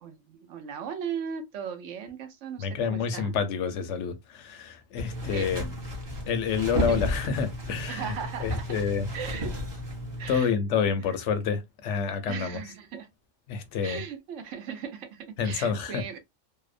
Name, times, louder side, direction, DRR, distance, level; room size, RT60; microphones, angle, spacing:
voice 1, 0.0-3.3 5.3-5.5 6.9-7.0 7.9-8.7 9.1-9.6 10.2-10.5 11.1-11.2 12.3-13.1 13.8-16.2, right 7 dB, 75° right, 0.9 m, -37 dB
voice 2, 2.6-5.7 6.3-8.1 8.4-9.1 10.3-12.6 13.5-14.0 15.4-16.0, left 6 dB, 75° left, 0.9 m, -28 dB
sound 1, 5.0-10.4, left 1 dB, 25° right, 0.6 m, -33 dB
2.7 x 2.0 x 2.4 m
omnidirectional pair, 1.3 m